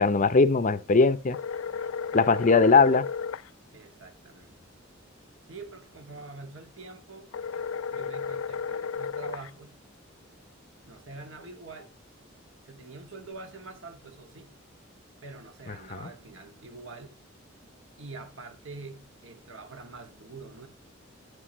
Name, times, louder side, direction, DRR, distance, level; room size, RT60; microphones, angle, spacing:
voice 1, 0.0-1.4 2.1-3.1 15.9-16.1, left 4 dB, 40° left, 0.6 m, -20 dB
sound 1, 1.3-3.5 7.3-9.5, left 6 dB, 85° left, 0.4 m, -33 dB
voice 2, 2.1-2.6 3.7-4.7 5.5-7.3 7.9-9.8 10.9-12.0 12.7-14.6 15.2-17.2 18.0-20.7, right 3 dB, 70° right, 2.0 m, -45 dB
9.9 x 8.3 x 3.1 m
head